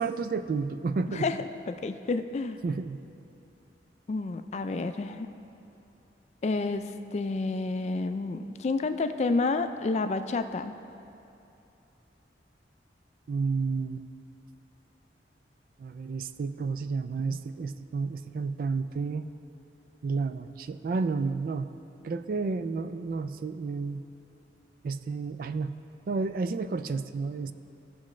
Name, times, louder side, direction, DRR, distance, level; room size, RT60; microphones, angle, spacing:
voice 1, 0.0-1.3 2.6-3.0 13.3-14.0 15.8-19.2 20.0-21.7 22.0-24.0 24.8-25.8 26.1-27.5, right 4 dB, 50° right, 11 dB, 0.3 m, -31 dB
voice 2, 1.7-2.6 4.1-5.3 6.4-10.7, left 3 dB, 35° left, 9 dB, 0.3 m, -29 dB
16.0 x 6.2 x 3.2 m, 2.7 s
head